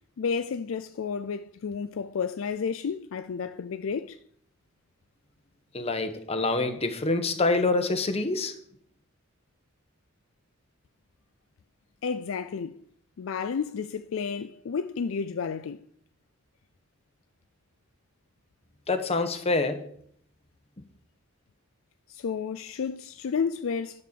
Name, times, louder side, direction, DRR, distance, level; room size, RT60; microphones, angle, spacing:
voice 1, 0.2-4.2 12.0-12.8 13.2-15.9 22.1-24.0, left 6 dB, 65° left, 0.4 m, -31 dB
voice 2, 5.7-8.5 18.9-19.9, left 3 dB, 30° left, 1.1 m, -26 dB
10.5 x 5.4 x 6.8 m
head